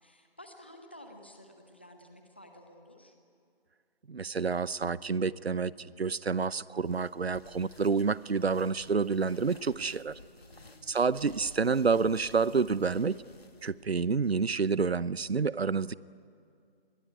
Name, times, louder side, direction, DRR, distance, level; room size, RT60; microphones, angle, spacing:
voice 1, 0.0-3.2 10.3-10.9, left 1 dB, 10° left, 4 dB, 0.8 m, -52 dB
voice 2, 4.1-10.2 10.9-13.1 13.6-16.0, right 5 dB, 75° right, 20 dB, 0.8 m, -28 dB
sound 1, 6.8-13.9, left 2 dB, 75° left, 2.3 m, -55 dB
27.0 x 21.5 x 9.6 m, 2.3 s
figure-of-eight pair, 165°, 31 cm